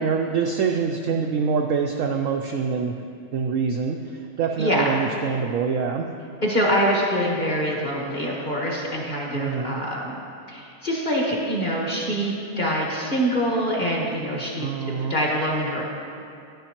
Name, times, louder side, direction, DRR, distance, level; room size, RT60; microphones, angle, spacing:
voice 1, 0.0-2.9 3.3-4.0 4.4-6.1 9.3-9.8 14.6-15.2, right 6 dB, 75° right, 2 dB, 0.7 m, -25 dB
voice 2, 4.6-4.9 6.4-10.2 10.5-14.7 15.0-15.8, equal, 30° left, -3 dB, 1.3 m, -24 dB
11.0 x 10.5 x 3.0 m, 2.5 s
omnidirectional pair, 1.9 m